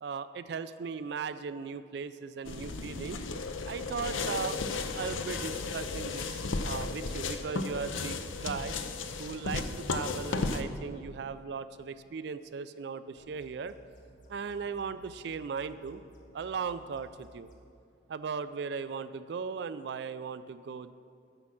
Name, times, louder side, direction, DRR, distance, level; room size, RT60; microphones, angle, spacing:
voice 1, 0.0-3.2 3.7-4.6 4.9-8.8 9.2-13.7 14.3-16.0 16.3-17.5 18.1-20.9, right 5 dB, 60° right, 13 dB, 0.3 m, -37 dB
sound 1, 2.4-10.6, left 3 dB, 90° left, 0.6 m, -34 dB
sound 2, 13.2-17.6, right 1 dB, 40° left, 1.3 m, -57 dB
9.7 x 7.1 x 6.3 m, 2.5 s
head